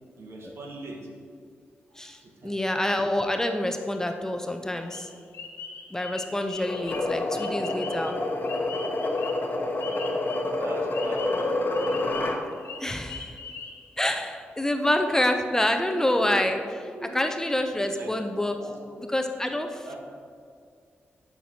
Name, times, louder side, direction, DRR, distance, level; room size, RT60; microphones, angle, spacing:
voice 1, 0.2-1.1 1.9-2.5 10.4-11.3 15.7-16.0 16.9-17.2 17.7-18.3 18.6-18.9 19.9-20.0, right 2 dB, 70° right, 0 dB, 1.3 m, -41 dB
voice 2, 2.0-5.1 5.9-8.2 12.8-13.4 14.0-18.6 19.0-20.0, left 1 dB, 10° left, 5 dB, 0.5 m, -27 dB
sound 1, 4.9-10.5 10.9-14.1, left 5 dB, 90° left, 0.8 m, -41 dB
sound 2, 6.6-12.4, left 2 dB, 45° left, 0.9 m, -28 dB
12.0 x 5.8 x 2.8 m, 2.2 s
cardioid pair, 80°, 4 cm